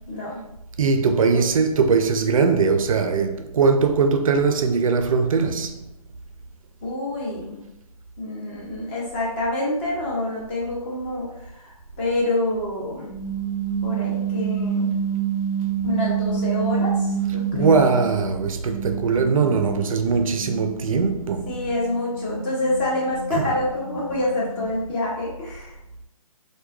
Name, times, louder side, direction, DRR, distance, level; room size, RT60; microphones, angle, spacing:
voice 1, 0.1-0.4 1.2-1.4 6.8-7.6 8.2-13.1 13.8-14.9 15.8-17.8 21.5-25.7, left 2 dB, 20° left, 0.6 m, -27 dB
voice 2, 0.8-5.7 17.5-21.5 23.3-23.5, right 5 dB, 60° right, 0.4 m, -20 dB
sound 1, 13.0-18.3 18.6-24.9, right 7 dB, 70° left, 1.0 m, -28 dB
3.1 x 2.2 x 2.2 m
hypercardioid pair, 155°, 19 cm